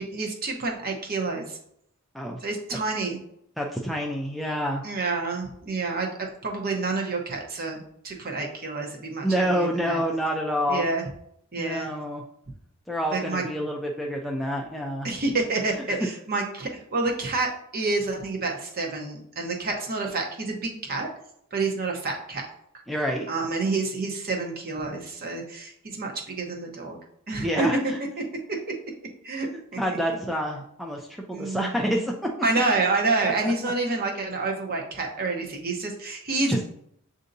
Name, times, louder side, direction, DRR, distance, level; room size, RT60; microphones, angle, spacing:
voice 1, 0.0-1.6 2.4-3.2 4.8-10.0 10.7-11.0 11.5-11.9 13.1-13.4 15.0-21.1 21.5-22.4 23.3-27.0 27.3-27.7 29.2-29.5 29.7-30.0 31.3-31.7 32.4-36.6, right 3 dB, 45° right, 1 dB, 0.9 m, -28 dB
voice 2, 3.6-4.8 9.2-10.9 11.6-12.2 12.9-15.1 22.9-23.3 27.4-28.0 29.5-32.1 33.2-33.5 36.5-36.6, equal, ahead, -1 dB, 0.4 m, -28 dB
7.6 x 2.7 x 2.6 m, 0.71 s
head